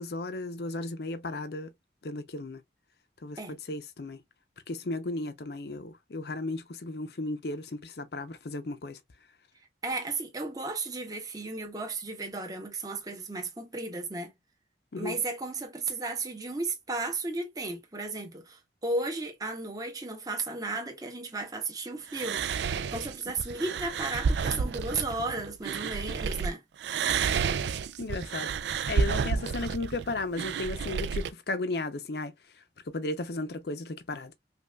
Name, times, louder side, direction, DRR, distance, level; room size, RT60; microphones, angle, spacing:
voice 1, 0.0-1.7 2.0-2.6 3.2-4.2 4.7-9.0 14.9-15.2 28.0-28.5 28.9-34.3, left 2 dB, 65° left, 0.6 m, -35 dB
voice 2, 9.8-14.3 15.0-26.6, right 3 dB, 20° right, 0.9 m, -34 dB
sound 1, 22.1-26.5 26.8-31.3, right 6 dB, 75° right, 0.4 m, -30 dB
5.3 x 2.4 x 2.2 m
head